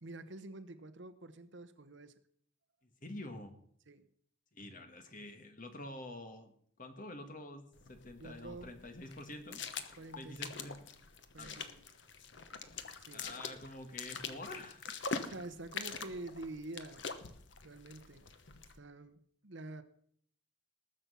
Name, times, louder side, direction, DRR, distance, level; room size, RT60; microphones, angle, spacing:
voice 1, 0.0-2.2 3.9-4.1 8.2-8.7 10.0-10.6 11.3-11.8 13.0-13.3 15.2-17.1 17.6-18.2 18.7-19.8, right 2 dB, 60° right, 11 dB, 1.0 m, -47 dB
voice 2, 3.0-3.5 4.5-6.5 6.8-9.6 10.2-10.8 11.4-11.6 13.1-14.9, left 1 dB, 40° left, 7 dB, 1.6 m, -47 dB
sound 1, 7.7-18.8, left 5 dB, 55° left, 1.1 m, -45 dB
19.5 x 7.3 x 5.6 m, 0.62 s
head